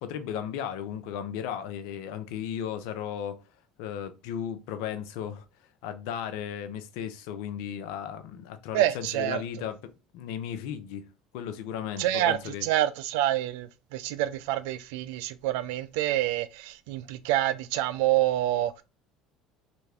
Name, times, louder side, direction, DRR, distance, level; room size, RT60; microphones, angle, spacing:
voice 1, 0.0-3.4 3.8-5.5 5.8-11.1 11.3-12.7, left 9 dB, 75° left, 0.6 m, -35 dB
voice 2, 8.7-9.4 12.0-18.7, right 13 dB, 80° right, 0.4 m, -27 dB
3.3 x 2.6 x 3.3 m
supercardioid pair, 85°, 0 cm